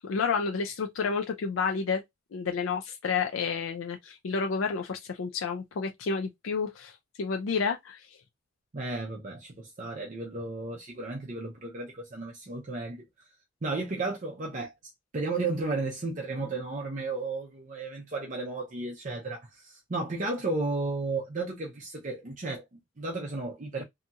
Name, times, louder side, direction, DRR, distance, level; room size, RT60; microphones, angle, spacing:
voice 1, 0.0-2.0 2.3-8.1, left 5 dB, 80° left, 0.4 m, -30 dB
voice 2, 8.7-13.1 13.6-14.7 15.1-23.8, right 3 dB, 40° right, 0.6 m, -33 dB
2.7 x 2.7 x 2.3 m
head